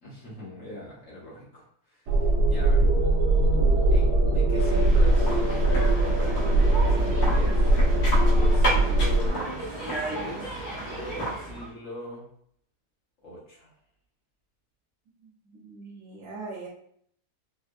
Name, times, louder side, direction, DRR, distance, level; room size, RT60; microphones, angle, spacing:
voice 1, 0.0-2.9 3.9-6.2 6.6-7.7 8.3-12.3 13.2-13.7, left 1 dB, 55° left, -7 dB, 1.5 m, -41 dB
sound 1, 2.1-9.3, right 1 dB, 85° right, 1.2 m, -21 dB
sound 2, 4.6-11.7, right 1 dB, 75° left, 1.6 m, -32 dB
voice 2, 15.2-16.7, right 3 dB, 65° right, -3 dB, 1.0 m, -41 dB
4.2 x 2.1 x 2.3 m, 0.66 s
omnidirectional pair, 1.6 m